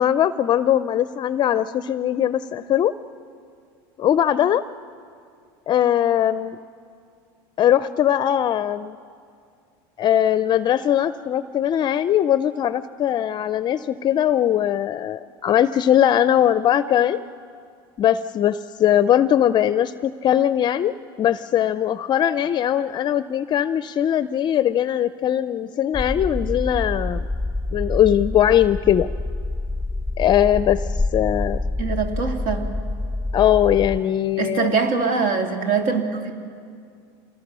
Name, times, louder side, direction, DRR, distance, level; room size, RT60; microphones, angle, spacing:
voice 1, 0.0-2.9 4.0-4.6 5.7-6.6 7.6-8.9 10.0-17.2 18.0-27.3 27.7-29.1 30.2-31.6 33.3-34.8, left 10 dB, 35° left, 14 dB, 0.5 m, -20 dB
sound 1, 25.9-34.0, left 2 dB, 5° right, 0.8 m, -27 dB
voice 2, 31.8-32.7 34.4-36.3, right 5 dB, 70° right, 5 dB, 2.6 m, -23 dB
26.5 x 20.5 x 6.2 m, 2.3 s
supercardioid pair, 110°, 13 cm